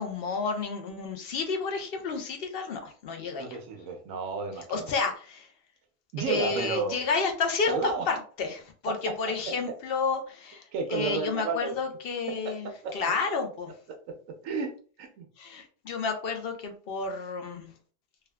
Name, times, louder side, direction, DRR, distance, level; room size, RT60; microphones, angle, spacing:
voice 1, 0.0-3.5 4.7-5.5 6.3-7.7 8.1-13.7 15.4-17.7, left 4 dB, 60° left, 4 dB, 0.7 m, -31 dB
voice 2, 3.4-4.9 6.1-7.0 7.7-8.1 8.9-9.0 9.2-9.3 10.7-11.7 12.4-13.0 14.1-14.2 14.4-15.3, right 4 dB, 85° right, 4 dB, 1.1 m, -32 dB
3.5 x 2.2 x 2.2 m, 0.41 s
omnidirectional pair, 1.3 m